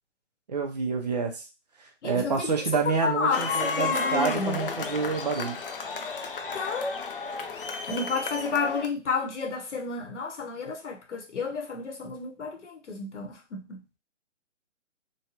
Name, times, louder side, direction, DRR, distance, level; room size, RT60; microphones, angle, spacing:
voice 1, 0.5-1.5 1.8-5.6, right 5 dB, 35° right, 3 dB, 0.5 m, -28 dB
voice 2, 2.0-2.5 2.9-4.6 6.5-7.0 7.9-13.8, left 4 dB, 70° left, 3 dB, 1.0 m, -31 dB
sound 1, 3.3-8.9, left 4 dB, 50° left, 0.5 m, -32 dB
3.1 x 2.2 x 2.8 m, 0.27 s
figure-of-eight pair, 145°, 36 cm